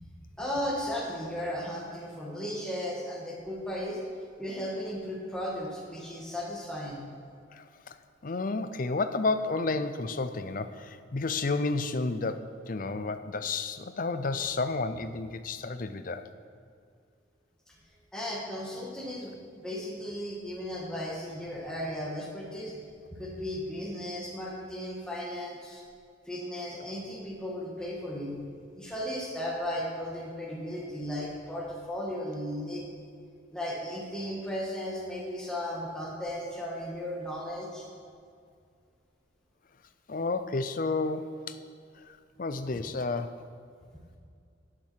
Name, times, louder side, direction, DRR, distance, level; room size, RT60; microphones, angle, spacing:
voice 1, 0.4-4.0 4.4-7.0 17.7-17.8 18.1-22.8 23.2-25.8 26.3-28.3 28.7-32.8 33.5-37.9, left 1 dB, 5° left, -5 dB, 1.7 m, -35 dB
voice 2, 7.5-7.9 8.2-16.2 40.1-41.6 42.1-43.3, left 3 dB, 45° left, 10 dB, 0.5 m, -31 dB
12.0 x 8.7 x 4.6 m, 2.3 s
head